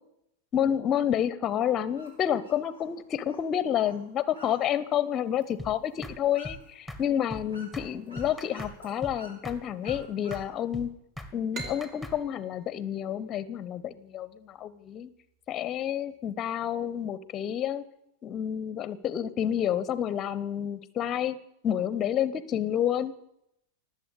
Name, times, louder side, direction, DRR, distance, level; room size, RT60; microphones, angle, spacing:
voice 1, 0.5-10.9 11.3-15.1 15.5-17.8 18.2-21.4 21.6-23.1, left 10 dB, 30° left, 17 dB, 1.0 m, -29 dB
sound 1, 1.9-10.9, equal, 75° right, 5.2 m, -53 dB
sound 2, 5.6-5.7 6.0-6.2 6.4-6.6 6.9-7.0 7.3-7.4 7.7-7.9 8.2-8.7 9.0-9.2 9.4-9.6 9.9-10.0 10.3-10.5 10.7-10.9 11.2-11.3 11.6-12.2, left 1 dB, 5° right, 1.9 m, -39 dB
sound 3, 11.5-14.9, right 3 dB, 35° right, 2.7 m, -45 dB
19.0 x 8.0 x 8.3 m, 0.78 s
figure-of-eight pair, 90°, 0 cm